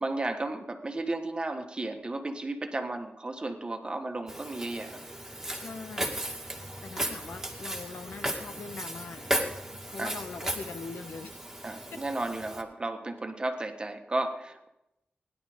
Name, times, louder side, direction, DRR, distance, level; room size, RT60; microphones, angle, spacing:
voice 1, 0.0-5.0 10.0-10.1 11.6-14.7, right 2 dB, 30° right, 6 dB, 1.5 m, -34 dB
Walk footsteps, 4.3-12.6, right 1 dB, 10° right, 2.2 m, -36 dB
voice 2, 5.5-6.2 6.8-9.3 9.9-11.3, left 4 dB, 80° left, 9 dB, 1.0 m, -42 dB
17.0 x 11.0 x 5.1 m, 0.88 s
wide cardioid pair, 105°, 3 cm